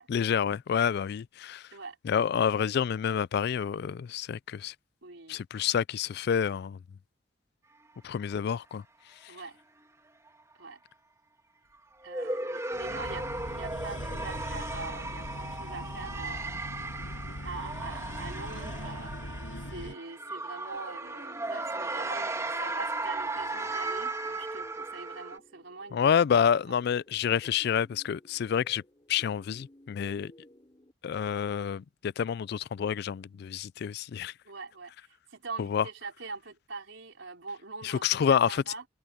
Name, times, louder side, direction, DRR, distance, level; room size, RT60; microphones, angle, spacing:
voice 1, 0.1-1.6 2.0-4.7 5.3-6.8 8.0-8.8 25.9-28.8 29.1-30.3 31.0-34.3 35.6-35.8 37.8-38.6, left 7 dB, 55° left, 0.3 m, -28 dB
voice 2, 5.0-5.4 9.3-9.6 10.6-10.8 12.0-16.6 17.4-19.4 19.7-26.8 34.5-38.9, right 3 dB, 80° right, 3.9 m, -43 dB
sound 1, 12.0-25.4, right 2 dB, 15° right, 2.3 m, -36 dB
sound 2, 12.7-20.0, left 1 dB, 85° left, 7.2 m, -40 dB
sound 3, 19.6-30.9, left 1 dB, 25° left, 5.6 m, -58 dB
head